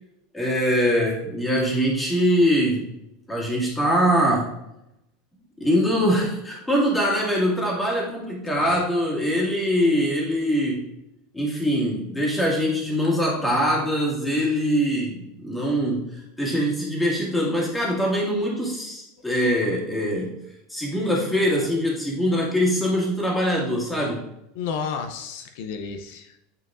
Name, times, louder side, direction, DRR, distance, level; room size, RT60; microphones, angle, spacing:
voice 1, 0.3-2.8 3.3-4.5 5.6-10.9 11.3-20.4 20.7-24.2, equal, 5° left, -4 dB, 1.9 m, -23 dB
voice 2, 24.5-26.4, left 6 dB, 65° left, 5 dB, 0.6 m, -32 dB
8.7 x 4.5 x 2.5 m, 0.84 s
supercardioid pair, 145°, 0 cm